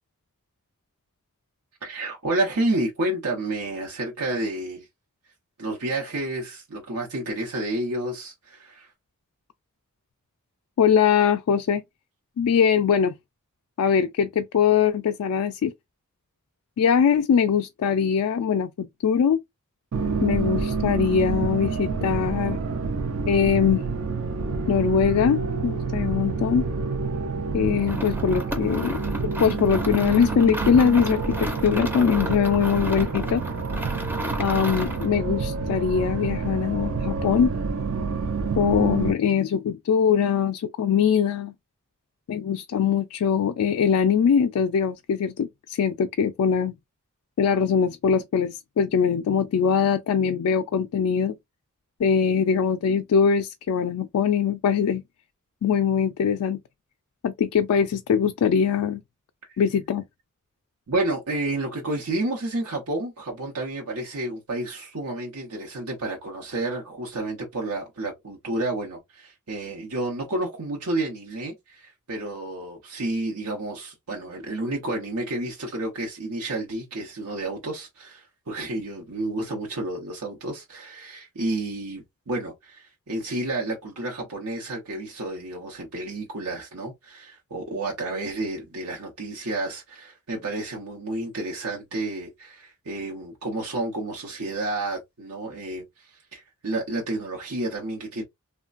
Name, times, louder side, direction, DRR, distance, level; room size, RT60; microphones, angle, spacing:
voice 1, 1.8-4.9 5.6-8.9 59.5-59.6 60.9-98.2, right 2 dB, 85° right, 0.8 m, -30 dB
voice 2, 10.8-11.8 12.4-13.1 13.8-15.7 16.8-19.4 20.2-22.6 23.3-23.8 24.7-26.6 27.5-33.4 34.4-37.5 38.6-41.5 42.3-46.7 47.4-51.4 52.0-55.0 55.6-56.6 57.2-59.0 59.6-60.0, left 7 dB, 75° left, 0.3 m, -22 dB
sound 1, 19.9-39.1, right 4 dB, 65° right, 0.4 m, -28 dB
sound 2, 27.8-35.1, equal, 10° right, 0.5 m, -34 dB
3.1 x 2.2 x 2.4 m
head